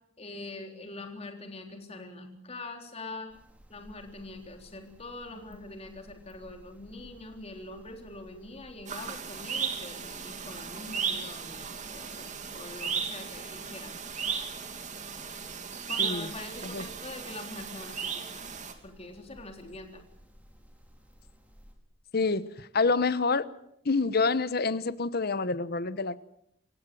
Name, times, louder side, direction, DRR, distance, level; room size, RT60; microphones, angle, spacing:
voice 1, 0.2-3.3 3.7-11.7 11.9-12.2 12.5-13.9 14.3-14.4 15.9-18.4 18.8-20.0, left 2 dB, 35° left, 4 dB, 3.9 m, -43 dB
sound 1, 3.3-21.8, equal, 10° right, 4.4 m, -56 dB
sound 2, 8.9-18.7, right 6 dB, 40° right, 2.8 m, -36 dB
voice 2, 22.1-23.5 23.8-26.2, left 4 dB, 55° left, 16 dB, 0.9 m, -27 dB
27.5 x 16.5 x 7.8 m, 0.77 s
head